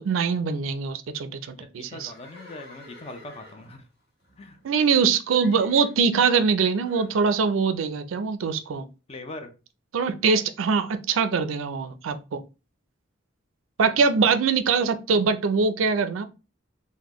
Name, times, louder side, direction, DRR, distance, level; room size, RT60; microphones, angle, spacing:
voice 1, 0.0-2.1 4.6-8.9 9.9-12.4 13.8-16.2, right 5 dB, 90° right, 0.4 m, -23 dB
voice 2, 1.6-3.8 4.4-4.6 9.1-9.5 13.9-14.1, left 2 dB, 30° left, 0.5 m, -41 dB
Livestock farm animals working animals, 1.9-5.0 5.3-6.0 6.8-7.2, left 1 dB, 55° left, 1.6 m, -50 dB
3.7 x 2.1 x 2.9 m
head